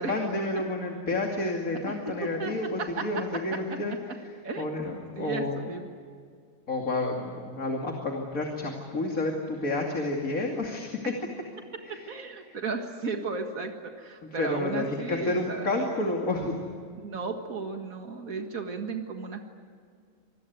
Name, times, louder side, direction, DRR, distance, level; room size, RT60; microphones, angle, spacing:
voice 1, 0.0-4.0 4.6-5.5 6.7-10.9 11.8-12.1 12.5-12.6 14.2-16.5, left 2 dB, 85° left, 1 dB, 3.0 m, -30 dB
voice 2, 1.9-3.1 3.3-3.8 4.4-5.9 11.0-11.1 11.9-15.7 17.0-19.4, right 4 dB, 90° right, 4 dB, 2.2 m, -35 dB
27.0 x 21.0 x 9.4 m, 2.1 s
omnidirectional pair, 1.4 m